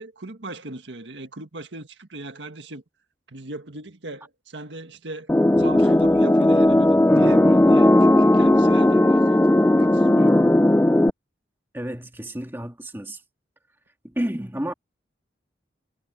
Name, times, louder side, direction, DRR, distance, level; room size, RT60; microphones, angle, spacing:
voice 1, 0.0-2.8 3.3-5.3 5.6-10.5, right 2 dB, 80° right, 1.7 m, -38 dB
sound 1, 5.3-11.1, left 1 dB, 10° left, 0.3 m, -16 dB
sound 2, 5.5-9.8, equal, 30° right, 7.6 m, -49 dB
voice 2, 11.7-13.2 14.0-14.7, right 1 dB, 10° right, 1.9 m, -30 dB
head